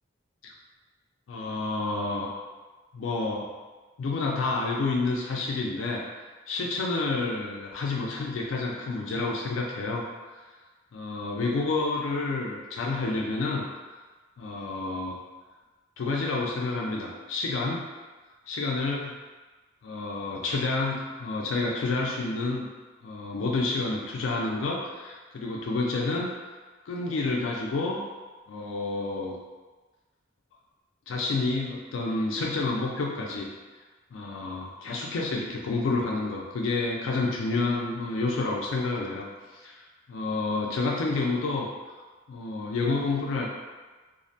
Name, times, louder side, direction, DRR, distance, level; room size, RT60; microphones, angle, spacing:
voice 1, 1.3-2.3 2.9-3.5 4.0-6.0 6.5-10.0 10.3-10.4 10.9-13.7 14.4-15.2 16.0-17.8 18.5-19.2 19.8-22.7 23.0-26.3 26.9-28.0 28.5-29.4 31.1-33.5 34.1-41.7 42.3-43.5, left 3 dB, 80° left, -2 dB, 0.3 m, -29 dB
2.5 x 2.0 x 2.6 m, 1.3 s
head